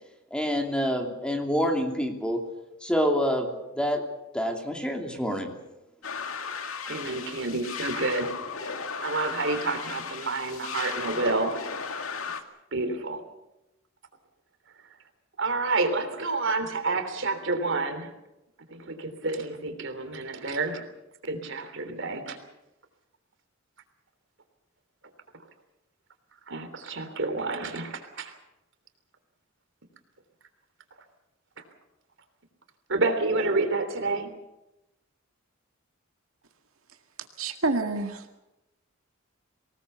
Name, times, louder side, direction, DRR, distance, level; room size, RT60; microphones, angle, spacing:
voice 1, 0.3-2.4 2.8-4.0 4.3-5.5, equal, 5° left, 3 dB, 2.9 m, -27 dB
sound 1, 6.0-12.4, left 5 dB, 90° left, 2.1 m, -35 dB
voice 2, 6.9-8.3 8.6-8.7 9.0-11.5 12.7-13.2 15.4-18.1 18.7-20.8 21.2-22.4 26.5-28.3 32.9-34.3, right 3 dB, 65° right, 8 dB, 3.4 m, -29 dB
voice 3, 37.4-38.4, right 3 dB, 85° right, 5 dB, 2.0 m, -28 dB
25.0 x 19.0 x 6.9 m, 0.96 s
head